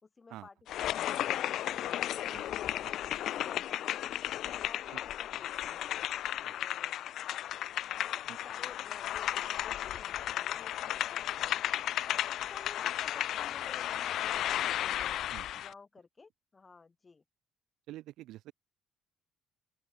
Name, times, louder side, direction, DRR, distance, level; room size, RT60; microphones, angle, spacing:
voice 1, 0.0-3.9 4.5-5.9 6.6-7.0 7.9-11.8 12.3-15.1 15.5-17.2, left 4 dB, 20° left, 4.6 m, -54 dB
sound 1, 0.7-15.7, left 12 dB, 55° left, 0.6 m, -34 dB
voice 2, 17.9-18.5, right 15 dB, 75° right, 1.0 m, -47 dB
open air
cardioid pair, 175°, 0 cm